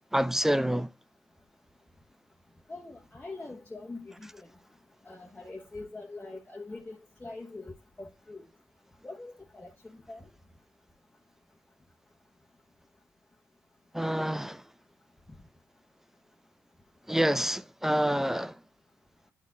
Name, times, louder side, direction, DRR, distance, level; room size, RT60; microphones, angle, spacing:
voice 1, 0.1-0.9 13.9-14.6 17.1-18.6, equal, 5° right, 0.3 m, -27 dB
voice 2, 2.7-4.5 5.0-8.5 9.0-10.3, left 2 dB, 20° left, 1.2 m, -43 dB
10.0 x 4.2 x 3.8 m
supercardioid pair, 55°, 6 cm